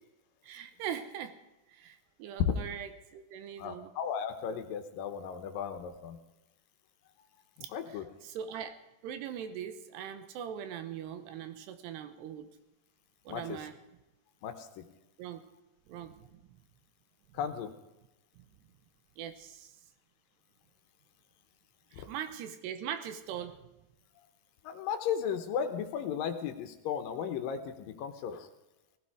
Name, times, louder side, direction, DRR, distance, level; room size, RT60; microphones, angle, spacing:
voice 1, 0.4-1.4 1.7-3.9 7.6-7.7 8.2-12.5 13.3-13.8 15.2-15.5 15.9-16.6 17.3-17.4 18.4-18.5 19.2-19.7 21.9-23.7, right 9 dB, 90° right, 10 dB, 3.1 m, -41 dB
voice 2, 3.6-6.2 7.7-8.1 13.3-13.6 14.4-14.8 17.3-17.7 24.6-28.5, left 7 dB, 70° left, 7 dB, 2.4 m, -35 dB
18.0 x 15.5 x 4.9 m, 0.98 s
omnidirectional pair, 4.8 m